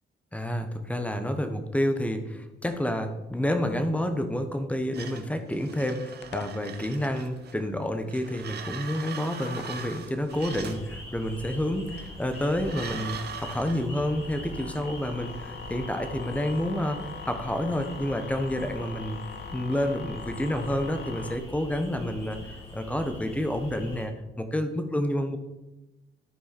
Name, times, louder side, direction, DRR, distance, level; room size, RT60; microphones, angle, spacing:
voice 1, 0.3-19.2 19.5-25.4, left 1 dB, 5° left, 7 dB, 1.1 m, -29 dB
sound 1, 4.9-7.6 8.1-10.9 12.0-13.8, right 7 dB, 55° right, 1.0 m, -41 dB
sound 2, 6.2-21.4, left 7 dB, 60° left, 0.7 m, -44 dB
sound 3, 10.3-24.1, equal, 30° left, 2.7 m, -43 dB
12.5 x 4.7 x 4.4 m, 1.0 s
cardioid pair, 90°, 20 cm